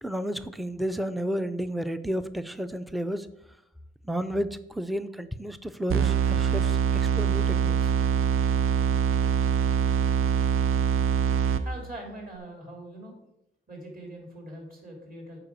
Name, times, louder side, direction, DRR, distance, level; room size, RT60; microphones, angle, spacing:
voice 1, 0.0-3.3 4.0-7.8, equal, ahead, 12 dB, 0.4 m, -32 dB
sound 1, 5.9-11.9, right 7 dB, 85° right, 0.5 m, -24 dB
voice 2, 11.6-13.1 13.7-15.4, right 1 dB, 45° right, 0 dB, 3.1 m, -42 dB
7.8 x 4.9 x 6.2 m, 0.85 s
wide cardioid pair, 120°, 21 cm